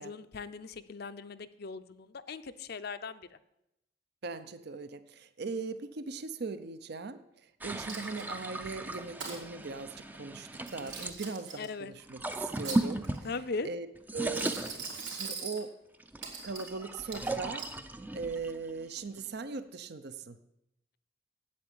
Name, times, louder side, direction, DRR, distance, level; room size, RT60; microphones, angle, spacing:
voice 1, 0.0-3.4 11.6-11.9 13.2-13.7, left 4 dB, 55° left, 12 dB, 0.6 m, -39 dB
voice 2, 4.2-7.2 7.6-13.1 13.6-13.9 14.1-14.7 15.1-15.7 16.4-17.7 18.1-20.4, right 4 dB, 60° right, 12 dB, 0.7 m, -39 dB
sound 1, 7.6-11.2 12.0-13.7 14.0-15.4 16.0-19.4, right 1 dB, 10° right, 0.5 m, -37 dB
Coin (dropping), 7.9-8.5 8.9-9.4 10.5-11.7 12.3-13.3 14.2-15.6 16.2-16.7 17.1-17.8, right 5 dB, 75° right, 3.2 m, -41 dB
8.5 x 8.3 x 8.7 m, 0.86 s
head